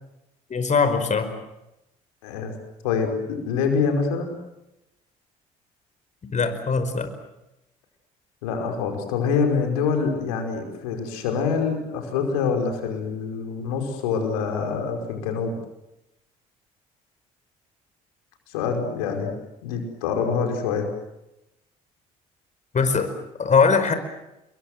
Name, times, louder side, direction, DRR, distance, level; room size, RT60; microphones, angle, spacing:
voice 1, 0.5-1.3 6.3-7.1 22.7-23.1 23.4-23.9, left 5 dB, 40° left, 9 dB, 5.1 m, -21 dB
voice 2, 2.2-2.5 2.8-4.3 8.4-15.5 18.5-19.3 19.6-20.9, left 5 dB, 85° left, 4 dB, 5.2 m, -25 dB
27.0 x 23.5 x 7.8 m, 0.91 s
hypercardioid pair, 60°, 18 cm